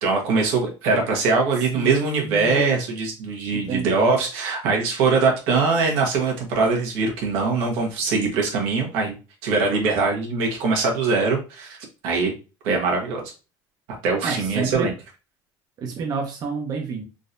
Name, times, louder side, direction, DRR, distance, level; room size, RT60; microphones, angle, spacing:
voice 1, 0.0-9.2 9.4-11.8 12.0-12.3 12.6-13.3 14.0-14.9, right 4 dB, 80° right, 0 dB, 1.3 m, -22 dB
voice 2, 1.7-2.8 3.6-4.1 14.2-14.9 15.8-17.0, right 4 dB, 45° right, 1 dB, 0.8 m, -29 dB
3.8 x 2.8 x 2.6 m, 0.31 s
cardioid pair, 120°, 9 cm